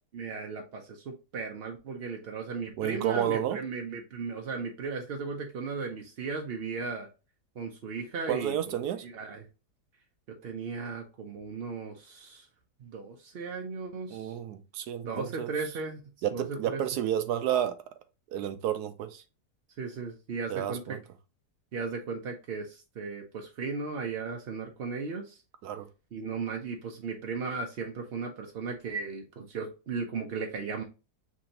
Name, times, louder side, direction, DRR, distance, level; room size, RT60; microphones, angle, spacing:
voice 1, 0.1-7.1 7.6-8.6 9.0-9.4 10.4-12.5 12.8-14.4 15.0-16.0 16.3-16.8 19.8-21.0 21.7-25.4 26.1-30.8, right 4 dB, 60° right, 0.6 m, -36 dB
voice 2, 2.8-3.6 8.3-9.1 14.1-15.5 16.2-17.8 18.3-19.2 20.5-21.0 25.6-25.9, right 10 dB, 80° right, 1.1 m, -31 dB
5.9 x 2.7 x 2.8 m
omnidirectional pair, 1.7 m